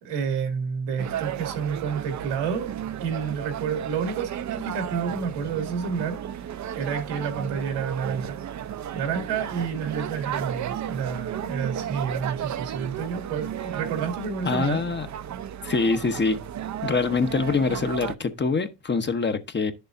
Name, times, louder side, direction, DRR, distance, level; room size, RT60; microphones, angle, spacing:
voice 1, 0.0-2.7 3.0-8.4 8.9-14.8, right 6 dB, 90° right, 2.3 m, -30 dB
sound 1, 1.0-18.1, right 10 dB, 40° right, 0.6 m, -34 dB
voice 2, 14.4-15.1 15.6-16.4 16.8-19.7, left 4 dB, 25° left, 0.9 m, -24 dB
10.5 x 6.8 x 2.6 m
cardioid pair, 90°, 43 cm